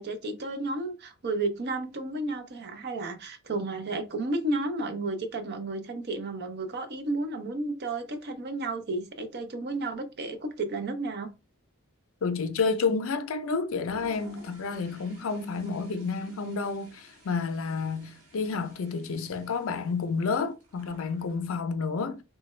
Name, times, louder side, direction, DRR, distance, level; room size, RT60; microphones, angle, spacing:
voice 1, 0.0-11.3, right 2 dB, 50° right, 0.6 m, -32 dB
voice 2, 12.2-22.2, left 4 dB, 65° left, 0.4 m, -30 dB
Toilet flush, 13.7-21.6, equal, 70° right, 1.4 m, -54 dB
3.2 x 2.2 x 3.1 m
head